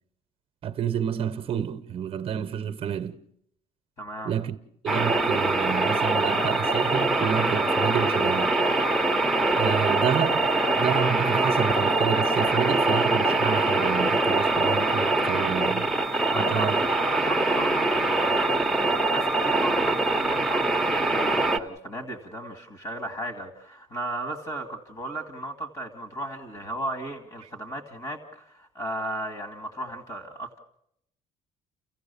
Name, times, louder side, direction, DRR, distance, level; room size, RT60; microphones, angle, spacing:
voice 1, 0.6-3.2 4.2-4.6 4.8-8.6 9.5-15.9 16.3-16.9, right 9 dB, 45° right, 0.9 m, -29 dB
voice 2, 4.0-4.3 16.3-30.6, right 1 dB, 35° left, 2.3 m, -36 dB
sound 1, 4.9-21.6, right 2 dB, ahead, 0.9 m, -23 dB
30.0 x 16.0 x 7.0 m
cardioid pair, 160°, 14 cm